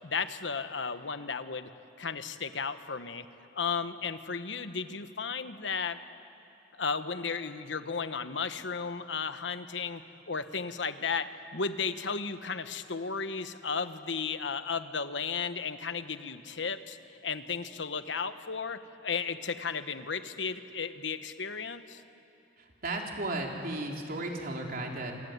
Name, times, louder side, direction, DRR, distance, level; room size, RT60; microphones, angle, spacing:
voice 1, 0.0-1.7 2.0-3.3 3.5-6.0 6.7-17.0 17.2-22.0, left 5 dB, 90° left, 10 dB, 1.2 m, -34 dB
voice 2, 22.6-25.1, right 2 dB, 55° right, 0 dB, 3.8 m, -35 dB
27.5 x 23.0 x 9.5 m, 3.0 s
head